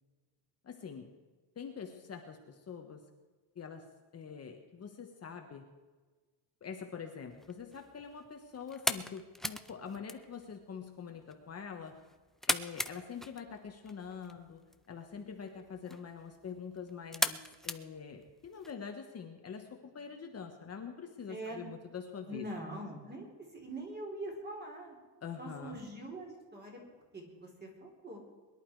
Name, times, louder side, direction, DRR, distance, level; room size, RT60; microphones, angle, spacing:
voice 1, 0.6-1.1 1.5-3.0 3.5-5.7 6.6-12.0 12.5-14.6 14.9-22.5 25.2-25.8, left 6 dB, 35° left, 3 dB, 1.4 m, -45 dB
sound 1, 7.3-18.7, left 1 dB, ahead, 0.4 m, -40 dB
voice 2, 21.3-21.7 22.3-23.3 23.5-25.0 25.4-26.8 27.1-28.2, right 1 dB, 20° right, 0 dB, 4.3 m, -43 dB
22.0 x 11.5 x 4.8 m, 1.3 s
cardioid pair, 165°, 43 cm